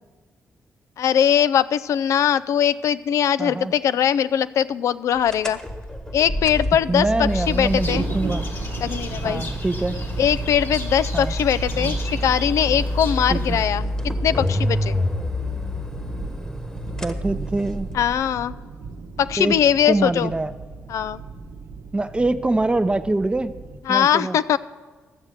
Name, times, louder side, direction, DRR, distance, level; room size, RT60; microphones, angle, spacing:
voice 1, 1.0-5.6 6.1-8.1 8.8-9.4 10.2-13.9 14.2-15.0 17.9-18.6 19.2-20.3 20.9-21.2 23.9-24.6, left 9 dB, 75° left, 16 dB, 0.3 m, -21 dB
voice 2, 3.4-3.7 6.9-8.4 9.2-10.0 11.1-11.3 13.3-13.6 17.0-17.9 19.4-19.6 19.8-20.5 21.9-23.5 23.9-24.4, right 2 dB, 20° right, 12 dB, 0.6 m, -24 dB
sound 1, 5.3-18.1, left 1 dB, 15° left, 1.2 m, -28 dB
sound 2, 7.3-13.7, left 2 dB, 50° left, 1.9 m, -36 dB
Thunder, 7.7-23.8, right 4 dB, 85° right, 0.9 m, -36 dB
13.0 x 7.3 x 6.5 m, 1.4 s
supercardioid pair, 55°, 5 cm